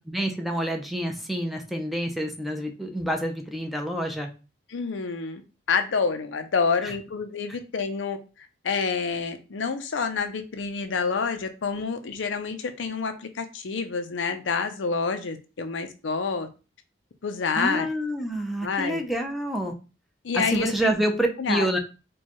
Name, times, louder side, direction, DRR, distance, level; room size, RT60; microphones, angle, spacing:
voice 1, 0.1-4.3 17.6-19.7 20.3-21.8, right 1 dB, ahead, 0.5 m, -27 dB
voice 2, 4.7-5.4 5.7-8.2 8.6-16.5 17.2-17.9 18.6-19.0 20.2-20.9 21.4-21.7, left 5 dB, 85° left, 0.5 m, -28 dB
4.4 x 2.3 x 2.9 m
head